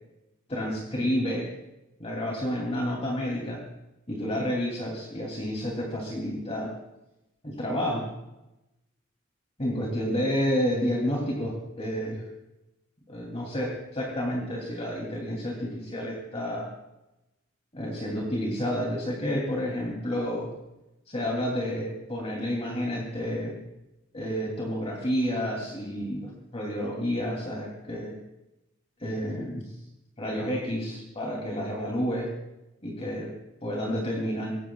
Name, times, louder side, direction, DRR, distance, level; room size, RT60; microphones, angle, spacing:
voice 1, 0.5-1.5 2.0-3.6 4.1-6.7 7.4-8.1 9.6-12.2 13.1-16.7 17.7-20.5 21.1-23.5 24.1-28.2 29.0-29.7 30.2-32.3 32.8-33.3 33.6-34.6, equal, 30° left, -2 dB, 2.9 m, -30 dB
23.5 x 19.0 x 2.4 m, 0.92 s
head